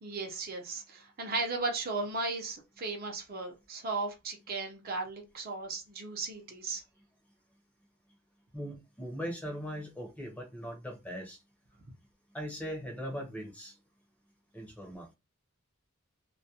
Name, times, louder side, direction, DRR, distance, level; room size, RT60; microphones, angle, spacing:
voice 1, 0.0-6.8, right 3 dB, 45° right, 0.6 m, -36 dB
voice 2, 8.5-11.4 12.3-13.7 14.5-15.1, equal, 5° left, 0.6 m, -40 dB
2.3 x 2.1 x 2.7 m
head